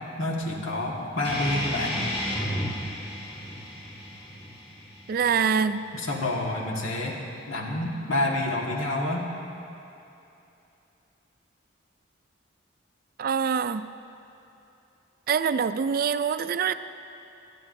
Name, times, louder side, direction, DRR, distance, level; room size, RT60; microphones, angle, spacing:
voice 1, 0.2-2.0 5.9-7.2 7.5-9.3, left 1 dB, 90° left, -2 dB, 1.7 m, -28 dB
sound 1, 1.2-6.3, equal, 25° left, 2.0 m, -33 dB
voice 2, 5.1-5.9 13.2-13.9 15.3-16.7, right 6 dB, 50° right, 12 dB, 0.3 m, -25 dB
26.5 x 9.1 x 2.6 m, 2.8 s
head